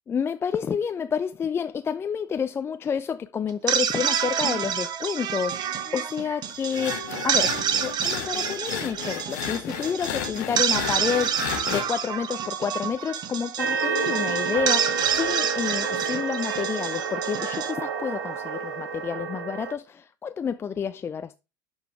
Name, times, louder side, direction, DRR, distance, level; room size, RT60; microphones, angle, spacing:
voice 1, 0.1-21.4, left 7 dB, 25° left, 0.4 m, -29 dB
sound 1, 3.5-18.7, right 8 dB, 40° right, 0.9 m, -28 dB
sound 2, 6.7-11.8, left 10 dB, 65° left, 1.1 m, -33 dB
sound 3, 13.6-19.7, right 5 dB, 65° right, 0.9 m, -29 dB
11.0 x 3.9 x 3.5 m
figure-of-eight pair, 70°, 10 cm